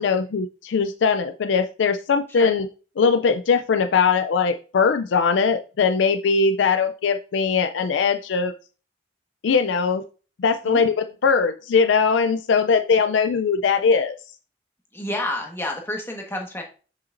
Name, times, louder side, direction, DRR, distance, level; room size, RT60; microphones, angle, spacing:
voice 1, 0.0-2.7 3.0-8.5 9.4-10.0 10.4-14.2, left 5 dB, 90° left, 9 dB, 0.4 m, -20 dB
voice 2, 14.9-16.6, left 1 dB, 15° left, 1 dB, 1.4 m, -29 dB
7.5 x 5.8 x 2.6 m, 0.36 s
head